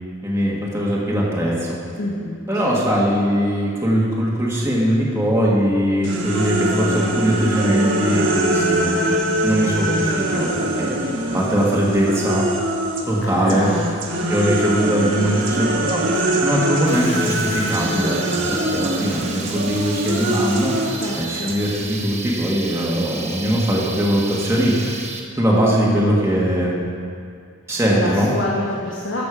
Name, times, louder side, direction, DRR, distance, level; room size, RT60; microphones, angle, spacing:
voice 1, 0.2-1.7 2.5-9.2 9.4-11.0 11.3-12.5 13.1-13.7 14.3-25.0 25.4-26.8 27.7-28.3, equal, 15° right, -5 dB, 1.5 m, -21 dB
voice 2, 2.0-2.7 13.2-14.0 20.9-21.5 27.9-29.2, left 1 dB, 65° left, -4 dB, 1.3 m, -27 dB
sound 1, 6.0-13.1 13.5-22.0, right 1 dB, 60° right, 1.2 m, -23 dB
sound 2, 16.9-26.0, right 4 dB, 35° right, 1.0 m, -33 dB
13.5 x 6.7 x 4.9 m, 2.3 s
head